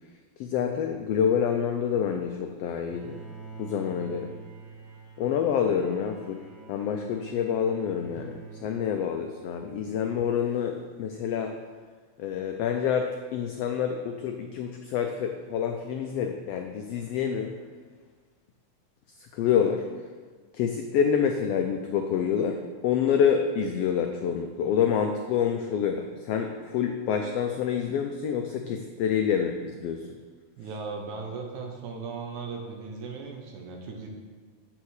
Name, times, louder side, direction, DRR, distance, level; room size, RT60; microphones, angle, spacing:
voice 1, 0.4-3.2 3.6-4.3 5.2-11.6 12.2-17.5 19.3-19.9 20.5-30.2, left 7 dB, 85° left, 4 dB, 1.4 m, -27 dB
Bowed string instrument, 2.8-9.6, right 5 dB, 55° right, 4.0 m, -46 dB
voice 2, 30.6-34.1, right 4 dB, 80° right, 1 dB, 2.7 m, -37 dB
7.4 x 6.8 x 6.4 m, 1.5 s
omnidirectional pair, 3.4 m